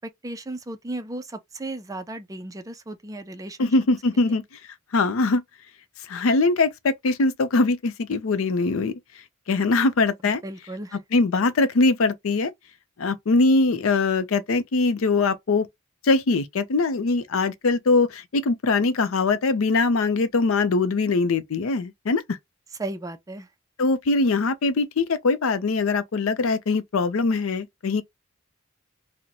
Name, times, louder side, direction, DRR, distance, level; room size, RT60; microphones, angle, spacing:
voice 1, 0.2-3.7 4.3-4.4 10.4-11.0 22.8-23.5, right 2 dB, 15° right, 0.4 m, -35 dB
voice 2, 3.6-4.4 4.9-5.4 6.1-8.9 9.5-10.4 11.1-12.5 13.0-15.7 16.0-22.4 23.8-28.0, left 3 dB, 70° left, 0.5 m, -22 dB
2.8 x 2.1 x 3.6 m
head